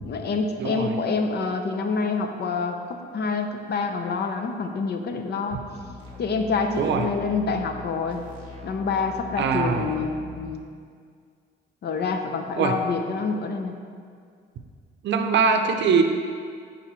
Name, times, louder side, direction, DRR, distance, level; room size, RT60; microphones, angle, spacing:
voice 1, 0.0-5.6 6.2-8.2 8.6-10.7 11.8-13.7, left 4 dB, 55° left, 5 dB, 0.6 m, -27 dB
voice 2, 0.6-0.9 6.8-7.1 9.4-10.0 12.6-12.8 15.0-16.0, right 5 dB, 65° right, 6 dB, 0.6 m, -22 dB
sound 1, 5.7-10.5, left 3 dB, 25° left, 1.5 m, -41 dB
10.0 x 3.9 x 3.1 m, 2.2 s
cardioid pair, 90°, 20 cm